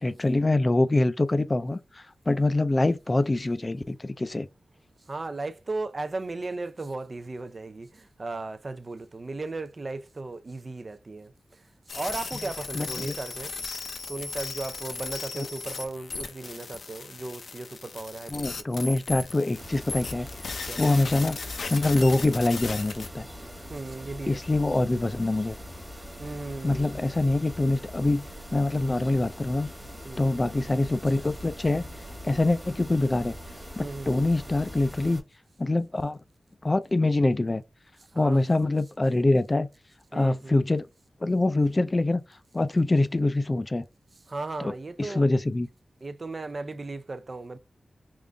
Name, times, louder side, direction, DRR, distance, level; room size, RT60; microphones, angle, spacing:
voice 1, 0.0-4.5 12.7-13.2 15.3-15.5 18.3-20.3 20.8-21.4 21.7-23.3 24.3-25.6 26.6-29.7 30.2-31.8 32.2-33.3 33.8-35.2 35.6-36.2 36.6-37.6 38.2-39.7 40.1-40.9 41.2-42.2 42.5-43.8 44.6-44.7 45.0-45.7, left 2 dB, 30° left, 0.4 m, -24 dB
voice 2, 5.1-11.6 11.9-13.5 14.1-18.9 20.6-20.8 23.7-24.4 26.2-27.0 30.0-30.4 32.3-32.4 33.8-34.3 38.1-38.4 40.1-40.6 44.3-45.3 46.0-47.6, right 3 dB, 40° right, 0.4 m, -36 dB
sound 1, 11.9-23.1, left 4 dB, 85° left, 0.6 m, -37 dB
sound 2, 19.5-35.2, equal, 5° right, 1.2 m, -42 dB
3.7 x 2.5 x 3.3 m
wide cardioid pair, 115°, 0 cm